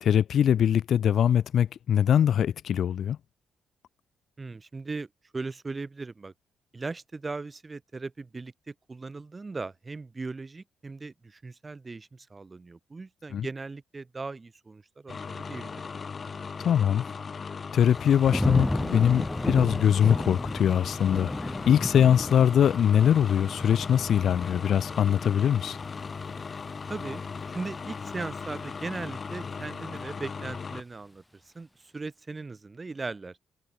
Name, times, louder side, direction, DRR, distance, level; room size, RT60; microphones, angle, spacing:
voice 1, 0.0-3.2 13.3-13.5 16.6-17.0 17.7-25.8, left 9 dB, 65° left, 1.3 m, -22 dB
voice 2, 4.4-5.1 5.3-6.3 6.7-15.9 26.9-27.2 27.5-31.2 31.5-31.7 31.9-33.4, right 3 dB, 25° right, 2.8 m, -38 dB
sound 1, 15.1-30.8, left 5 dB, 40° left, 2.0 m, -38 dB
Thunder / Rain, 17.8-28.7 29.1-29.6, left 1 dB, 10° left, 3.1 m, -34 dB
cardioid pair, 90°, 0 cm